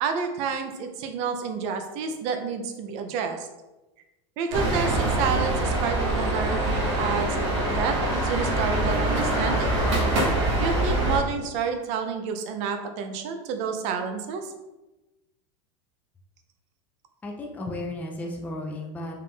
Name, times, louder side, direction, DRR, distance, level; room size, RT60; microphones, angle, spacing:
voice 1, 0.0-3.5 4.4-9.8 10.6-14.5, right 6 dB, 50° right, 6 dB, 0.6 m, -29 dB
sound 1, 4.5-11.2, right 1 dB, 80° right, 1.4 m, -24 dB
voice 2, 17.2-19.2, left 1 dB, 10° left, -1 dB, 0.5 m, -34 dB
4.3 x 2.5 x 3.6 m, 1.0 s
supercardioid pair, 145°, 15 cm